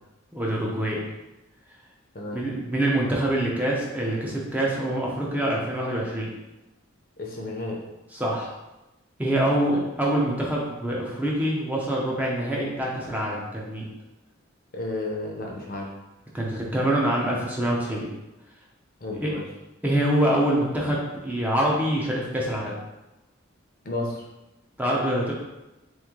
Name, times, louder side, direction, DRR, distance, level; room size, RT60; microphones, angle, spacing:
voice 1, 0.3-1.0 2.3-6.3 8.1-8.5 9.2-13.8 16.3-18.1 19.2-19.3 19.8-22.7 24.8-25.3, right 1 dB, 10° right, -3 dB, 0.5 m, -25 dB
voice 2, 7.2-7.8 14.7-15.9 19.0-19.5 23.8-24.3, left 2 dB, 45° left, 0 dB, 0.7 m, -32 dB
3.3 x 3.1 x 3.6 m, 1.0 s
head